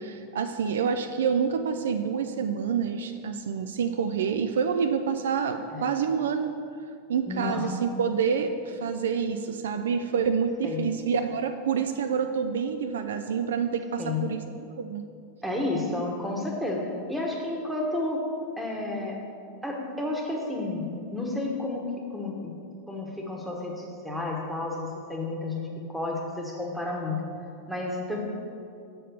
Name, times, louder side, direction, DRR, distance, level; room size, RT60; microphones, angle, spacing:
voice 1, 0.0-6.5 7.1-14.4 14.8-15.1, right 6 dB, 60° right, 7 dB, 0.3 m, -27 dB
voice 2, 7.3-7.7 10.6-10.9 14.0-14.2 15.4-18.2 18.6-19.2 19.6-22.5 22.9-27.2 27.7-28.2, left 2 dB, ahead, -1 dB, 1.3 m, -31 dB
7.1 x 4.5 x 6.7 m, 2.4 s
figure-of-eight pair, 90°, 0 cm